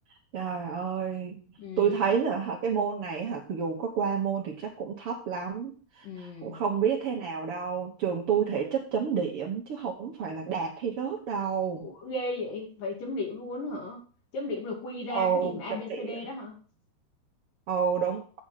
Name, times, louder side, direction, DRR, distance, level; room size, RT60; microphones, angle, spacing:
voice 1, 0.3-1.4 1.8-11.8 15.1-16.2 17.7-18.2, right 7 dB, 70° right, -1 dB, 1.3 m, -29 dB
voice 2, 1.6-2.1 6.0-6.6 11.8-14.1 14.3-16.6, left 2 dB, 60° left, 1 dB, 3.8 m, -36 dB
7.9 x 7.6 x 5.7 m, 0.38 s
omnidirectional pair, 4.6 m